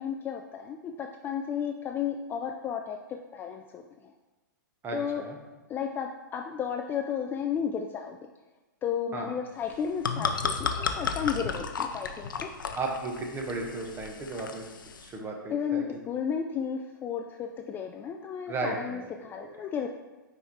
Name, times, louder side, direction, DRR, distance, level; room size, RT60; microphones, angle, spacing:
voice 1, 0.0-4.1 4.9-5.2 5.7-8.2 8.8-12.5 15.5-19.9, left 7 dB, 20° left, 3 dB, 0.3 m, -33 dB
voice 2, 4.8-5.4 9.1-9.3 12.7-14.7 15.0-16.0 18.5-19.5, right 3 dB, 20° right, 1 dB, 1.1 m, -35 dB
sound 1, 9.7-15.1, left 5 dB, 80° left, 0.6 m, -33 dB
5.5 x 4.8 x 4.3 m, 1.2 s
hypercardioid pair, 120°, 11 cm